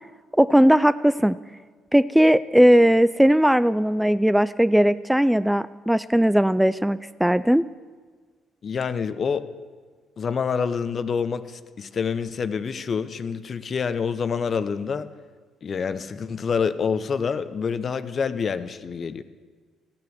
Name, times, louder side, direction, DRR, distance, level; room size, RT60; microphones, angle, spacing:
voice 1, 0.4-1.4 1.9-7.6, equal, 5° right, 15 dB, 0.3 m, -18 dB
voice 2, 8.6-9.5 10.2-15.1 15.6-19.2, left 6 dB, 45° left, 12 dB, 0.7 m, -27 dB
15.0 x 6.9 x 7.8 m, 1.5 s
supercardioid pair, 65°, 0 cm